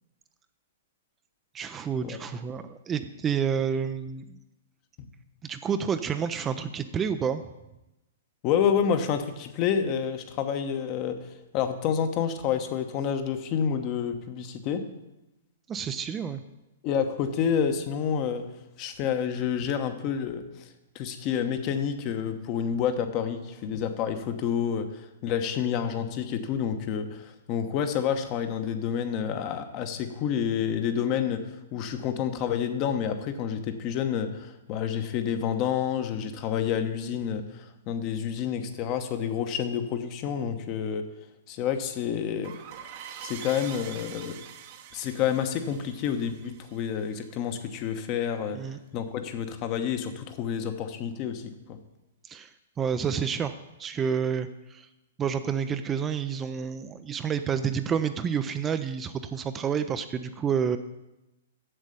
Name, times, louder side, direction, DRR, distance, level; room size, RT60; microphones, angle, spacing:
voice 1, 1.5-4.4 5.4-7.4 15.7-16.4 48.5-48.8 52.2-53.5 53.8-54.9 55.2-60.8, right 7 dB, 20° right, 9 dB, 0.5 m, -29 dB
voice 2, 8.4-14.8 16.8-18.5 18.8-20.7 20.9-41.1 41.5-42.6 43.2-44.4 44.9-48.6 48.9-51.8, left 8 dB, 35° left, 8 dB, 1.0 m, -29 dB
sound 1, 42.4-47.7, right 9 dB, 45° right, 0.9 m, -45 dB
7.7 x 7.3 x 6.8 m, 0.96 s
figure-of-eight pair, 115°, 0 cm